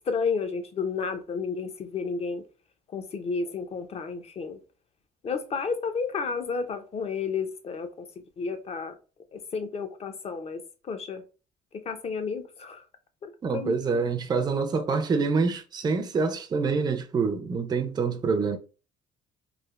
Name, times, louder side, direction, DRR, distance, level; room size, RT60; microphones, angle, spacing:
voice 1, 0.1-2.4 2.9-4.6 5.2-8.1 8.4-9.0 9.3-10.6 10.9-11.2 11.9-12.8 13.2-14.0, left 5 dB, 35° left, 0.6 m, -31 dB
voice 2, 13.4-18.6, right 4 dB, 25° right, 0.4 m, -26 dB
3.3 x 2.4 x 2.3 m
cardioid pair, 110°, 17 cm